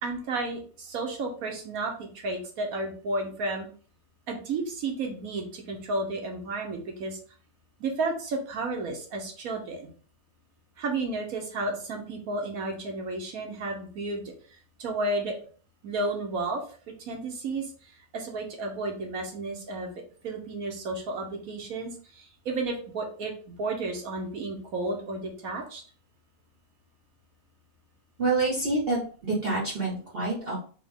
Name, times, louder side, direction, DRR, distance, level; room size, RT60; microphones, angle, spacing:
voice 1, 0.0-3.7 4.3-7.2 7.8-9.9 10.8-14.3 14.8-15.4 15.8-16.6 17.1-17.6 18.1-19.9 20.2-25.8, right 2 dB, 75° right, 2 dB, 1.4 m, -32 dB
voice 2, 28.2-30.6, right 3 dB, 45° right, -4 dB, 1.1 m, -27 dB
3.6 x 2.9 x 3.5 m, 0.41 s
omnidirectional pair, 1.5 m